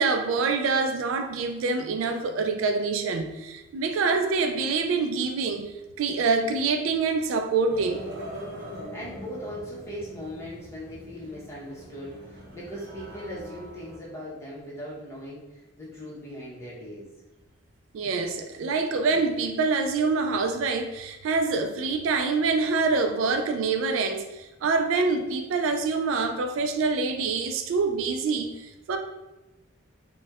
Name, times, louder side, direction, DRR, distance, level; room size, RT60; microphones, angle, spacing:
voice 1, 0.0-5.7 6.0-8.0 17.9-29.0, right 4 dB, 75° right, 6 dB, 0.3 m, -26 dB
sound 1, 7.7-14.0, equal, 55° right, 0.7 m, -42 dB
voice 2, 8.8-17.1, equal, 15° left, -7 dB, 0.8 m, -39 dB
4.2 x 2.1 x 2.3 m, 1.0 s
head